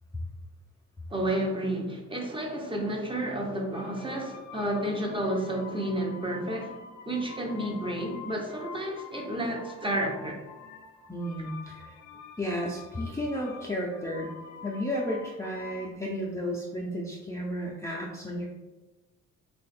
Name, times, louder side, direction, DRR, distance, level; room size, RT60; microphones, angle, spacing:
voice 1, 1.1-6.7 7.0-10.4, right 1 dB, 15° right, 0 dB, 0.8 m, -31 dB
sound 1, 3.7-15.9, left 5 dB, 70° left, 0.6 m, -47 dB
voice 2, 11.1-11.9 12.4-14.3 14.6-18.4, equal, 10° left, -4 dB, 0.5 m, -33 dB
3.1 x 2.4 x 4.1 m, 1.2 s
cardioid pair, 90°, 30 cm